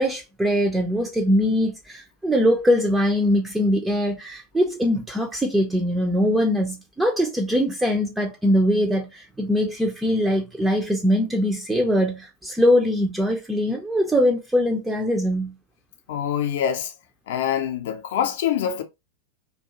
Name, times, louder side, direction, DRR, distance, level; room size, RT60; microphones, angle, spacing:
voice 1, 0.0-15.5, equal, 5° right, 0.4 m, -22 dB
voice 2, 16.1-16.9 17.3-18.8, left 9 dB, 55° left, 0.4 m, -25 dB
2.3 x 2.3 x 2.7 m
figure-of-eight pair, 90°, 0 cm